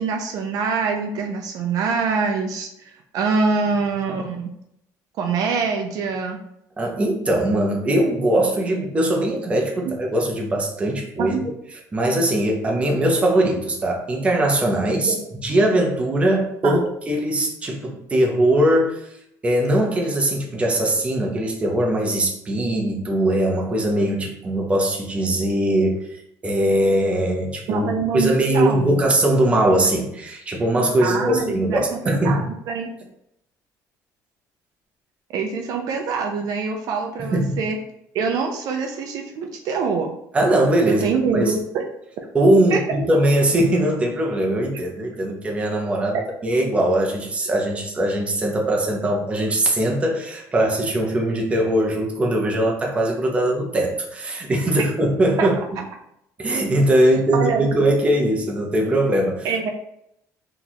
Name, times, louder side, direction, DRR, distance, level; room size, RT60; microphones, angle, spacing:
voice 1, 0.0-4.5 5.2-6.4 11.2-11.4 15.1-15.2 16.6-16.8 27.7-29.0 31.0-32.4 32.7-32.9 35.3-37.8 38.1-40.1 40.9-41.8 42.7-42.8 46.1-46.2 54.8-54.9 55.4-55.5 57.3-57.7 59.4-59.7, right 5 dB, 60° right, 3 dB, 0.4 m, -24 dB
voice 2, 6.8-11.4 11.9-15.1 15.4-19.0 19.4-26.1 26.4-27.8 28.1-32.4 37.3-37.6 40.3-41.0 41.3-41.6 42.3-55.5 56.4-59.5, right 1 dB, 15° right, 0 dB, 0.6 m, -20 dB
2.9 x 2.3 x 4.1 m, 0.78 s
cardioid pair, 150°, 7 cm